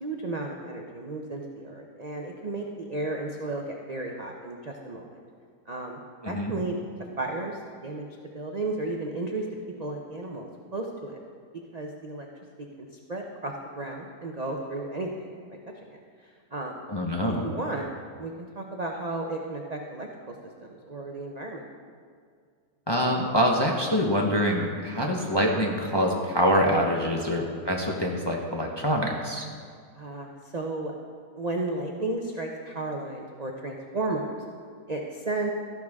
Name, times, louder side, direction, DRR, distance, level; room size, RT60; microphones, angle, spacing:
voice 1, 0.0-5.2 5.7-6.0 6.3-6.8 7.2-8.1 8.3-9.4 9.8-11.2 11.7-12.3 12.8-16.8 17.4-17.9 18.2-20.3 20.6-21.6 29.9-30.9 31.3-34.4 34.9-35.5, right 2 dB, 40° right, 1 dB, 0.6 m, -34 dB
voice 2, 6.2-6.5 16.9-17.4 22.9-29.5, equal, 20° left, -1 dB, 0.8 m, -25 dB
13.5 x 11.5 x 3.6 m, 2.1 s
omnidirectional pair, 1.8 m